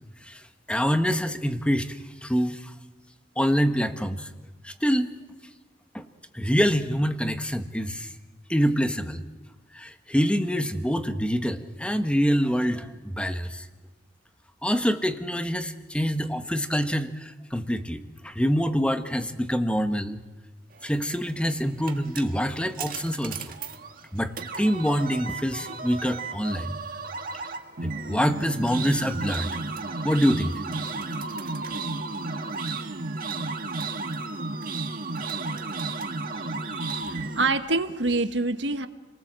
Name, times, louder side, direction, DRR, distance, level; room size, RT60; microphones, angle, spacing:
voice 1, 0.2-2.7 3.4-4.3 4.6-5.1 5.9-6.1 6.3-8.1 8.5-9.2 9.7-13.7 14.6-20.2 20.8-23.5 24.1-26.8 27.8-29.6 30.0-30.6, equal, 5° left, 8 dB, 1.3 m, -26 dB
sound 1, 21.3-37.5, right 3 dB, 55° right, 1.7 m, -33 dB
voice 2, 36.3-38.9, right 3 dB, 85° right, 8 dB, 1.5 m, -27 dB
30.0 x 19.0 x 7.6 m, 1.2 s
head